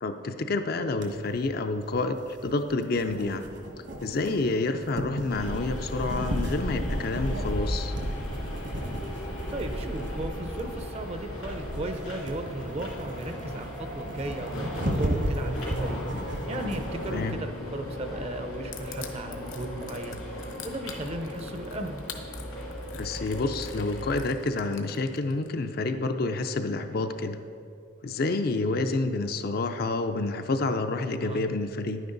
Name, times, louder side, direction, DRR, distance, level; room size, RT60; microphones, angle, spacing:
voice 1, 0.0-3.4 4.0-7.9 17.1-17.4 22.9-27.4 28.0-32.0, left 3 dB, 50° left, 7 dB, 0.5 m, -28 dB
sound 1, 1.0-17.3, right 1 dB, 60° right, 1.4 m, -36 dB
sound 2, 5.3-24.2, equal, 85° left, 2.8 m, -35 dB
voice 2, 9.5-14.7 15.0-16.0 16.5-20.2 20.6-22.0 31.2-31.4, right 1 dB, 30° right, 6 dB, 0.6 m, -35 dB
Crushing, 18.7-25.5, left 9 dB, 70° left, 0.9 m, -44 dB
10.5 x 9.3 x 3.9 m, 2.5 s
head